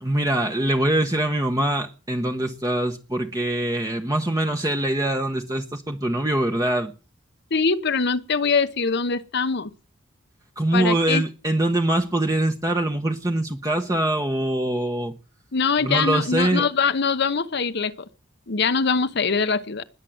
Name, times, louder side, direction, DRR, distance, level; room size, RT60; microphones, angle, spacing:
voice 1, 0.0-6.9 10.6-15.1 15.8-16.7, right 1 dB, 15° right, 1.0 m, -23 dB
voice 2, 7.5-9.7 10.7-11.2 15.5-17.9 18.5-19.8, left 5 dB, 55° left, 0.9 m, -23 dB
20.5 x 7.4 x 7.8 m
head